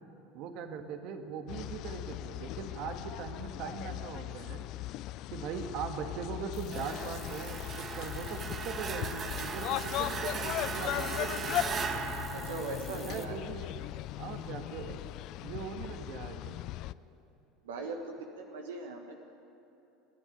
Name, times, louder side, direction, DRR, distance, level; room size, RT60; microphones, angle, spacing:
voice 1, 0.3-4.6 5.3-11.6 13.1-13.8 14.2-15.0 15.4-16.6, right 6 dB, 60° right, 6 dB, 1.8 m, -40 dB
sound 1, 1.5-16.9, left 15 dB, 55° left, 0.4 m, -38 dB
sound 2, 6.5-13.3, equal, 5° right, 2.0 m, -51 dB
sound 3, 6.7-13.4, right 5 dB, 40° right, 1.7 m, -38 dB
voice 2, 12.3-13.4 17.6-19.1, right 3 dB, 80° right, 3 dB, 1.5 m, -40 dB
28.0 x 10.0 x 9.2 m, 3.0 s
hypercardioid pair, 80°, 0 cm